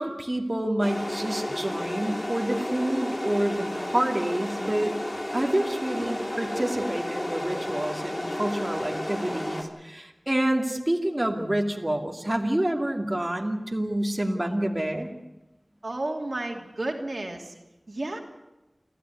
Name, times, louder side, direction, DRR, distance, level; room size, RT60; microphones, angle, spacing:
voice 1, 0.0-5.0 5.3-15.1, right 1 dB, 30° right, 1 dB, 2.5 m, -28 dB
sound 1, 0.8-9.6, left 1 dB, 40° left, 4.0 m, -32 dB
voice 2, 15.8-17.5 17.9-18.2, right 2 dB, 65° right, 2 dB, 2.9 m, -32 dB
29.0 x 13.5 x 9.4 m, 1.0 s
wide cardioid pair, 55°, 0 cm